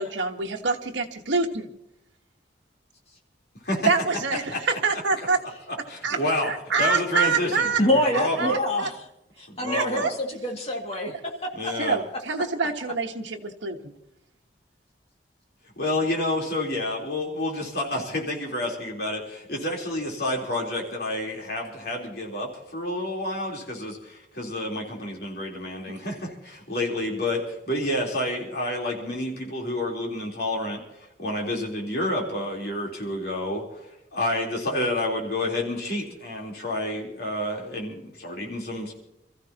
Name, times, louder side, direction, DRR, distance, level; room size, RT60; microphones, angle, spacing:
voice 1, 0.0-1.7 3.9-5.4 6.0-7.8 8.4-8.9 9.6-10.1 11.8-13.9 25.9-26.0, right 4 dB, 80° right, 2 dB, 1.3 m, -26 dB
voice 2, 5.9-6.5 6.8-8.6 9.5-10.1 11.6-12.0 15.8-30.8 31.2-33.9 34.1-38.9, left 1 dB, 55° left, -1 dB, 3.7 m, -29 dB
voice 3, 7.8-9.0 9.4-12.2, left 1 dB, 35° left, 1 dB, 2.2 m, -26 dB
28.0 x 14.5 x 2.9 m, 0.83 s
head